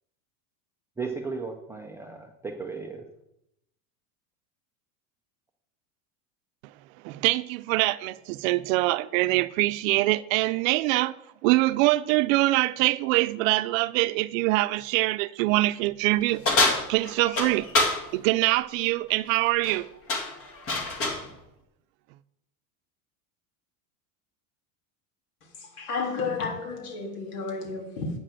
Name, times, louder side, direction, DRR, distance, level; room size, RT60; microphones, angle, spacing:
voice 1, 1.0-3.0, right 4 dB, 5° right, 0.3 m, -35 dB
voice 2, 7.0-11.1 11.4-16.4 16.9-17.7 18.1-19.9, right 19 dB, 65° right, 0.6 m, -24 dB
sound 1, 16.5-18.0 19.5-19.8 20.1-21.3, left 2 dB, 30° left, 2.2 m, -25 dB
voice 3, 25.6-28.1, left 4 dB, 80° left, 3.5 m, -32 dB
8.6 x 6.6 x 7.6 m
supercardioid pair, 160°, 44 cm